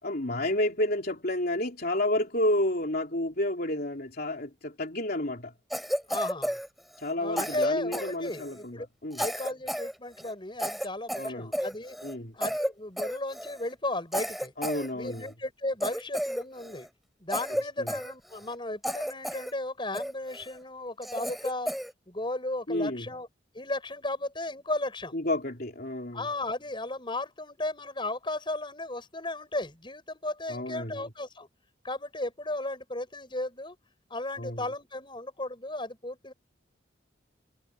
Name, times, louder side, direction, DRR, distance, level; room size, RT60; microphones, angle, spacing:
voice 1, 0.0-5.5 7.0-9.2 11.2-11.5 12.0-12.3 14.6-15.2 17.8-17.9 22.7-23.1 25.1-26.2 30.5-31.1 34.4-34.6, left 1 dB, 50° left, 3.4 m, -30 dB
Cough, 5.7-7.1 7.4-8.6 9.1-9.9 10.2-10.3 10.6-12.1 12.4-12.7 13.0-13.6 14.1-15.3 15.8-16.9 17.3-18.5 18.8-19.5 19.9-20.5 21.0-21.9, equal, ahead, 3.0 m, -33 dB
voice 2, 6.1-6.6 7.2-8.9 9.2-12.0 12.3-14.5 14.9-16.9 17.2-21.7 22.1-23.3 23.5-25.1 26.1-31.5 31.8-33.8 34.1-36.3, left 2 dB, 25° left, 6.7 m, -35 dB
head